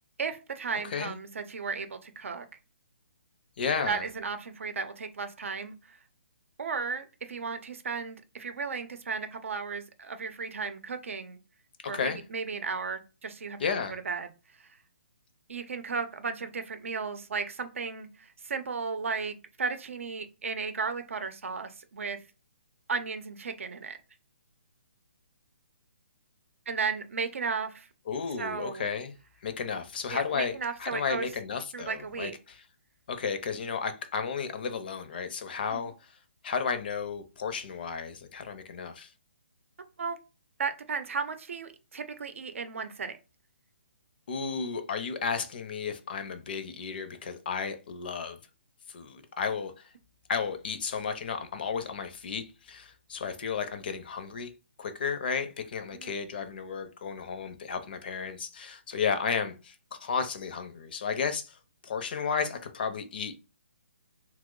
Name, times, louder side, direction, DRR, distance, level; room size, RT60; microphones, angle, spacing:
voice 1, 0.2-2.5 3.8-6.0 6.6-11.4 11.8-14.3 15.5-22.2 22.9-24.0 26.7-27.9 28.4-28.9 30.1-31.3 31.7-32.4 35.7-35.8 40.0-40.2 40.6-43.1 55.9-56.1, right 5 dB, 75° right, 0.6 m, -35 dB
voice 2, 0.8-1.2 3.6-4.0 11.8-12.2 13.6-14.0 28.1-29.1 29.4-32.6 33.1-36.1 36.4-39.1 44.3-48.4 48.9-49.7 50.3-54.5 54.8-61.6 61.8-63.4, left 6 dB, 45° left, 0.5 m, -33 dB
2.8 x 2.0 x 3.7 m
hypercardioid pair, 165°, 7 cm